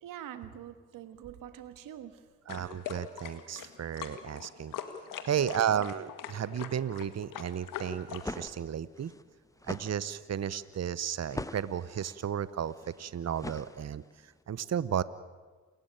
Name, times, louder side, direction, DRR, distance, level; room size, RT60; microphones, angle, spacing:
voice 1, 0.0-2.2 5.4-5.5 5.7-5.8, right 10 dB, 85° right, 11 dB, 1.5 m, -45 dB
sound 1, 2.5-8.5, left 9 dB, 80° left, 1.9 m, -42 dB
voice 2, 2.5-4.7 5.3-9.1 9.7-14.0 14.5-15.0, right 9 dB, 55° right, 17 dB, 0.9 m, -33 dB
sound 2, 8.0-14.2, left 1 dB, 10° left, 1.3 m, -43 dB
28.5 x 14.0 x 9.0 m, 1.4 s
supercardioid pair, 50°, 32 cm